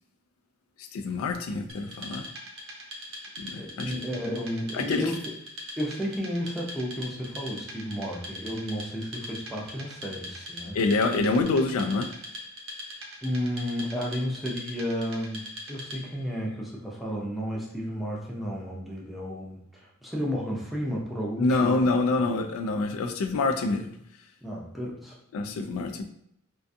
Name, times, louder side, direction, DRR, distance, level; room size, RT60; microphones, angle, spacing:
voice 1, 0.9-2.2 3.4-3.9 4.7-5.1 10.7-12.1 21.4-23.9 25.3-26.0, left 3 dB, 80° left, 7 dB, 0.3 m, -26 dB
Wood, 1.7-16.2, left 1 dB, 70° right, 0.7 m, -41 dB
voice 2, 3.6-5.2 5.8-10.8 13.2-21.8 22.1-22.3 24.4-25.2, equal, ahead, -4 dB, 0.5 m, -32 dB
2.5 x 2.2 x 2.6 m, 0.71 s
head